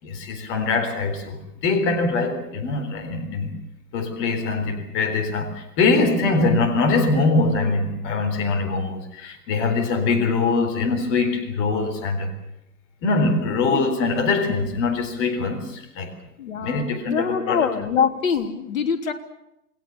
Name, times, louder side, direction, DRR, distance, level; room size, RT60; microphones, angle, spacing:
voice 1, 0.0-3.6 3.9-12.3 13.0-16.1 16.5-17.7, left 3 dB, 25° left, 4.0 m, -23 dB
voice 2, 5.9-6.2 13.5-14.0 16.4-19.1, left 6 dB, 55° left, 3.3 m, -25 dB
28.5 x 20.5 x 7.3 m
hypercardioid pair, 135°, 47 cm